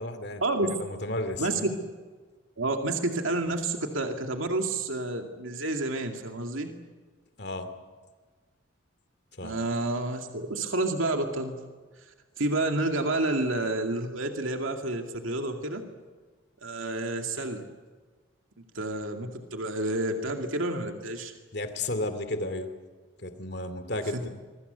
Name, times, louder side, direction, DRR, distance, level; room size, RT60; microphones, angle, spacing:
voice 1, 0.0-0.4 0.8-1.7 7.4-7.7 9.4-9.6 21.5-22.7 23.2-24.3, left 2 dB, 55° left, 9 dB, 2.5 m, -33 dB
voice 2, 1.4-1.7 2.6-6.7 9.4-11.6 12.4-15.8 16.6-17.6 18.7-21.3 24.1-24.2, right 2 dB, 80° right, 4 dB, 2.3 m, -29 dB
26.5 x 22.5 x 8.1 m, 1.4 s
head